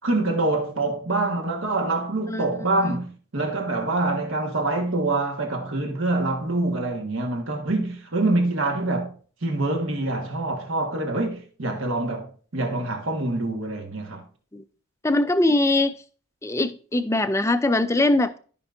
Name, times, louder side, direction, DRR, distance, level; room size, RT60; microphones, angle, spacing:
voice 1, 0.0-9.1 9.4-14.2, right 2 dB, 65° right, 1.5 m, -25 dB
voice 2, 15.0-15.9 16.4-18.4, left 2 dB, 15° left, 0.4 m, -21 dB
13.0 x 5.3 x 2.6 m
head